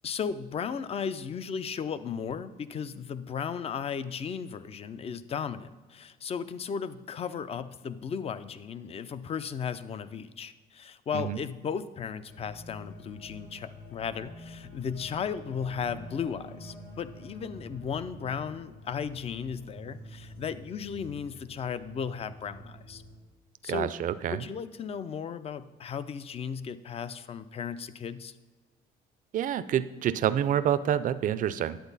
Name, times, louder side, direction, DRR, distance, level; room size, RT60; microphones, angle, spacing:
voice 1, 0.0-23.0 23.6-23.9 24.2-28.3, left 7 dB, 35° left, 14 dB, 0.5 m, -35 dB
sound 1, 12.2-23.2, equal, 85° left, 2.9 m, -48 dB
voice 2, 23.7-24.4 29.3-31.8, right 10 dB, 50° right, 14 dB, 0.5 m, -27 dB
10.0 x 8.1 x 4.1 m, 1.3 s
cardioid pair, 110°, 17 cm